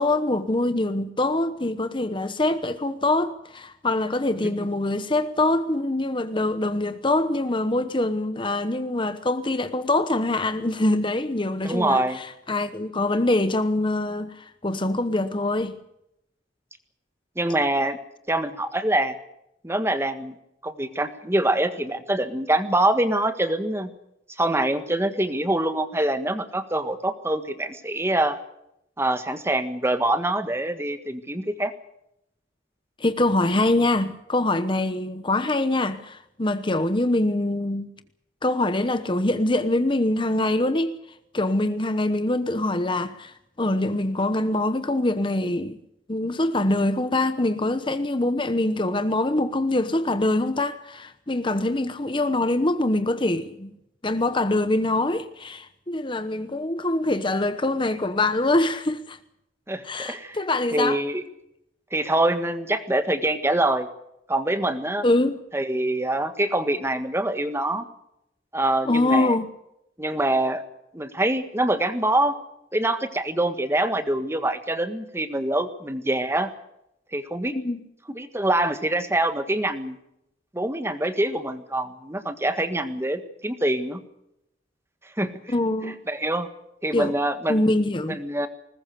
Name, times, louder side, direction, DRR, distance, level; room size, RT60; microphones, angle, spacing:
voice 1, 0.0-15.8 33.0-37.9 38.4-41.0 41.3-45.8 46.1-53.7 54.0-59.2 59.8-61.0 65.0-65.4 68.8-69.5 77.5-77.8 85.5-86.0 86.9-87.1 87.5-88.2, left 2 dB, 25° left, 1.0 m, -24 dB
voice 2, 11.6-12.2 17.4-18.0 18.3-19.1 19.6-20.3 20.6-23.9 24.4-28.4 29.0-31.7 59.7-60.4 60.7-61.2 61.9-63.9 64.3-65.0 65.5-67.9 68.5-69.3 70.0-70.6 70.9-72.3 72.7-76.5 77.1-77.5 78.1-80.0 80.5-84.0 85.2-85.3 85.8-86.5 86.8-87.6 88.1-88.5, right 1 dB, 15° right, 1.6 m, -25 dB
20.5 x 20.0 x 6.8 m
head